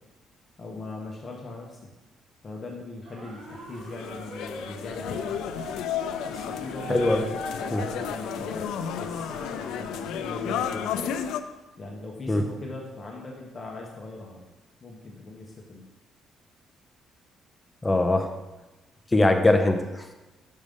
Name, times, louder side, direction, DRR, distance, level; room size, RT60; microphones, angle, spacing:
voice 1, 0.6-1.9 2.4-5.3 6.2-8.6 9.0-11.0 11.8-14.4 14.8-15.8, left 2 dB, 30° left, -1 dB, 1.1 m, -40 dB
sound 1, 3.0-10.2, right 1 dB, 55° right, 2.5 m, -42 dB
sound 2, 3.4-11.4, left 8 dB, 90° left, 0.4 m, -32 dB
voice 2, 6.9-7.2 7.7-7.8 12.3-12.4 17.8-18.3 19.1-20.1, left 2 dB, 10° left, 5 dB, 0.7 m, -21 dB
6.4 x 5.2 x 5.3 m, 1.1 s
cardioid pair, 145°, 0 cm